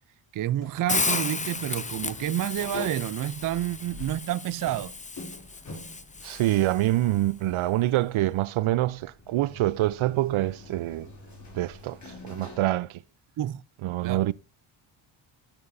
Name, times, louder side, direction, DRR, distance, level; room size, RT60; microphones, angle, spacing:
voice 1, 0.3-4.9 13.4-13.6 14.0-14.2, right 12 dB, 45° right, 0.4 m, -29 dB
sound 1, 0.6-12.7, left 2 dB, 35° left, 5.7 m, -46 dB
Hiss, 0.9-7.0, left 4 dB, 15° left, 0.6 m, -33 dB
voice 2, 6.2-11.1 11.5-13.0 13.8-14.3, right 15 dB, 75° right, 0.7 m, -26 dB
13.0 x 8.7 x 2.6 m
cardioid pair, 110°, 49 cm